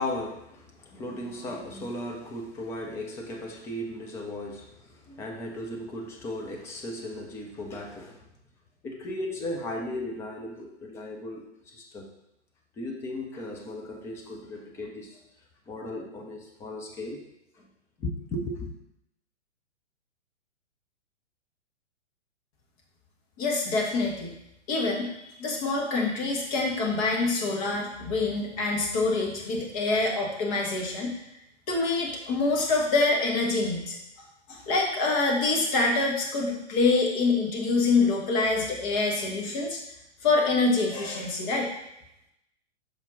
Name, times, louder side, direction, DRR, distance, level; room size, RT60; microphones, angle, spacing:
voice 1, 0.0-8.3 8.8-12.1 12.8-15.2 15.7-17.2 17.5-17.7 18.0-18.7, left 1 dB, 10° left, 1 dB, 0.4 m, -36 dB
voice 2, 23.4-24.4 24.7-25.1 25.4-31.2 31.7-33.9 34.5-39.8 40.2-41.7, left 3 dB, 35° left, 0 dB, 1.4 m, -25 dB
6.5 x 4.2 x 3.9 m, 0.83 s
figure-of-eight pair, 115°, 36 cm